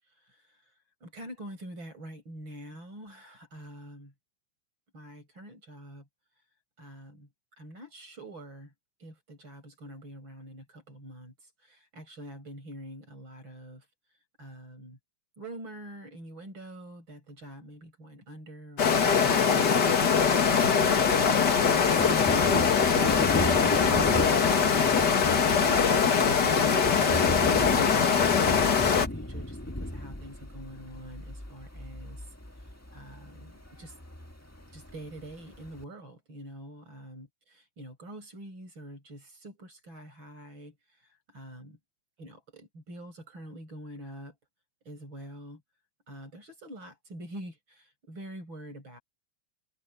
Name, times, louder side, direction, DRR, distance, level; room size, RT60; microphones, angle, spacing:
voice 1, 1.0-4.1 4.9-6.1 6.8-7.3 7.6-8.7 9.0-11.3 11.6-13.8 14.4-15.0 15.4-20.6 21.8-26.3 27.2-32.2 32.9-33.9 34.7-40.7 41.3-41.8 42.2-44.3 44.8-45.6 46.1-49.0, right 1 dB, 35° right, 8.5 m, -45 dB
sound 1, 18.8-29.1, left 6 dB, 40° left, 1.8 m, -22 dB
Thunder, 20.5-35.8, left 1 dB, 10° left, 0.9 m, -35 dB
omnidirectional pair, 3.6 m